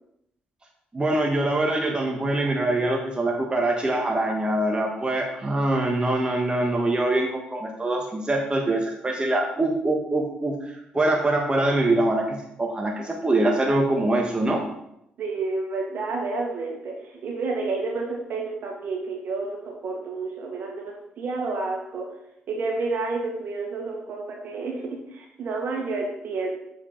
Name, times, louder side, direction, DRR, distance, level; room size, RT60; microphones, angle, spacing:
voice 1, 0.9-14.6, right 2 dB, 25° right, 0 dB, 1.2 m, -24 dB
voice 2, 15.2-22.1 22.5-26.5, right 3 dB, 60° right, -1 dB, 2.1 m, -30 dB
6.9 x 4.9 x 4.4 m, 0.77 s
supercardioid pair, 55°, 4 cm